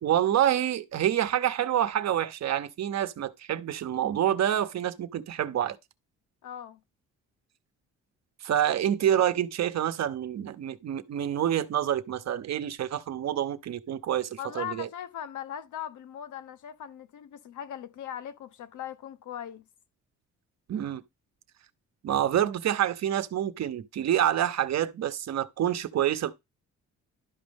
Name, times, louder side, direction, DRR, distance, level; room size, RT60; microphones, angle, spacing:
voice 1, 0.0-5.8 8.4-14.9 20.7-21.0 22.0-26.3, right 11 dB, 60° right, 1.0 m, -27 dB
voice 2, 6.4-6.8 14.4-19.6, left 10 dB, 75° left, 1.1 m, -39 dB
11.5 x 5.2 x 3.5 m
cardioid pair, 90°, 30 cm